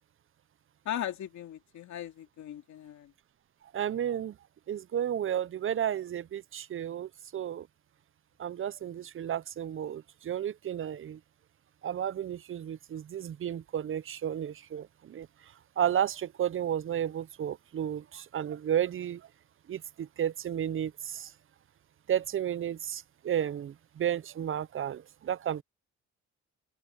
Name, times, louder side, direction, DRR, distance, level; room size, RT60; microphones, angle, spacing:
voice 1, 0.8-3.1, left 11 dB, 70° left, 2.7 m, -38 dB
voice 2, 3.7-4.3 4.7-7.7 8.4-11.2 11.8-15.3 15.8-19.2 19.7-21.3 22.1-25.6, right 10 dB, 45° right, 0.6 m, -32 dB
open air
cardioid pair, 90°, 30 cm